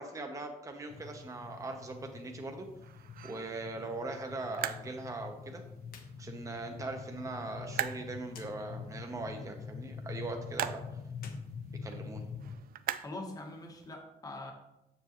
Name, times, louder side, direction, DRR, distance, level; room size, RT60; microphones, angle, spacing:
voice 1, 0.0-2.7 3.2-5.6 6.2-10.8 11.8-12.2, right 2 dB, 20° right, 3 dB, 0.8 m, -40 dB
sound 1, 0.7-13.9, right 11 dB, 80° right, 0.4 m, -44 dB
sound 2, 0.9-12.6, left 6 dB, 45° left, 0.5 m, -45 dB
sound 3, 5.8-6.1 6.5-6.6 8.3-8.5 11.1-12.4, left 5 dB, 75° left, 0.9 m, -54 dB
voice 2, 13.0-14.5, left 2 dB, 25° left, 3 dB, 1.0 m, -43 dB
7.3 x 7.0 x 3.0 m, 0.87 s
wide cardioid pair, 145°, 15 cm